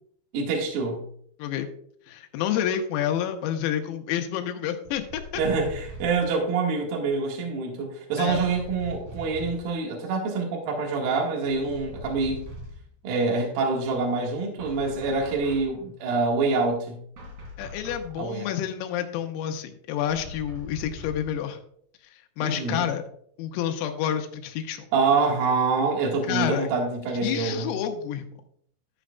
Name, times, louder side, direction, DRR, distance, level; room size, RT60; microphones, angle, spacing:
voice 1, 0.3-1.0 5.4-12.4 13.0-17.0 18.2-18.5 22.4-22.8 24.9-27.7, right 4 dB, 60° right, 0 dB, 2.7 m, -26 dB
voice 2, 2.1-5.2 8.2-8.4 17.6-21.6 22.1-23.0 23.4-24.9 26.3-26.7 27.2-28.3, left 10 dB, 85° left, 6 dB, 3.6 m, -29 dB
sound 1, 4.9-6.3 8.3-9.7 11.4-12.9 14.6-15.8 17.2-18.2 20.1-21.4, left 1 dB, 45° right, 3.0 m, -41 dB
12.5 x 8.7 x 2.3 m, 0.64 s
omnidirectional pair, 6.0 m